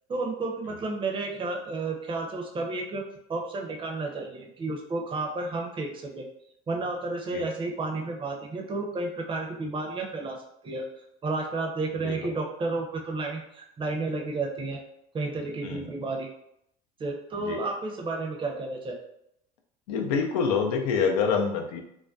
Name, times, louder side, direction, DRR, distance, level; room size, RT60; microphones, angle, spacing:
voice 1, 0.1-3.0 3.3-6.3 6.7-10.4 10.6-10.8 11.2-14.8 15.1-16.3 17.0-19.0, right 3 dB, 25° right, 1 dB, 0.5 m, -31 dB
voice 2, 12.0-12.3 15.6-15.9 17.4-17.6 19.9-21.8, left 5 dB, 90° left, 3 dB, 0.4 m, -27 dB
2.3 x 2.1 x 2.5 m, 0.77 s
supercardioid pair, 80°, 19 cm